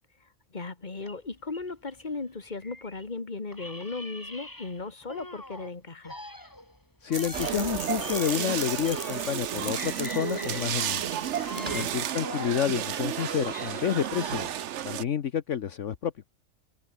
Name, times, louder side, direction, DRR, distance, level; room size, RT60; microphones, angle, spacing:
voice 1, 0.2-6.2 11.3-11.8, left 3 dB, 35° left, 2.2 m, -37 dB
sound 1, 1.0-3.1 3.5-5.7 6.0-9.5 9.7-12.6 13.0-14.7, left 1 dB, 15° left, 2.8 m, -44 dB
voice 2, 7.0-11.1 11.7-14.5 14.8-16.1, left 8 dB, 65° left, 1.3 m, -29 dB
sound 2, 7.1-12.0, right 1 dB, 25° right, 4.3 m, -39 dB
sound 3, 7.3-15.0, right 10 dB, 65° right, 1.0 m, -32 dB
omnidirectional pair, 1.4 m